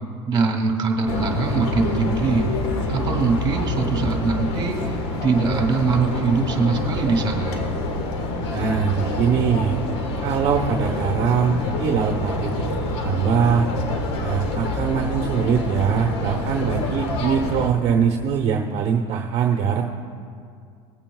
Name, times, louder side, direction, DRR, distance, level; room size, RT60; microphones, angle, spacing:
voice 1, 0.3-2.4 2.9-4.9 5.2-7.6, right 4 dB, 30° right, 1 dB, 2.5 m, -22 dB
sound 1, 1.1-17.7, left 2 dB, 85° left, 1.5 m, -27 dB
voice 2, 8.5-9.8 10.2-13.7 14.2-19.8, right 7 dB, 50° right, 2 dB, 1.0 m, -22 dB
21.0 x 8.8 x 2.4 m, 2.2 s
supercardioid pair, 105°, 14 cm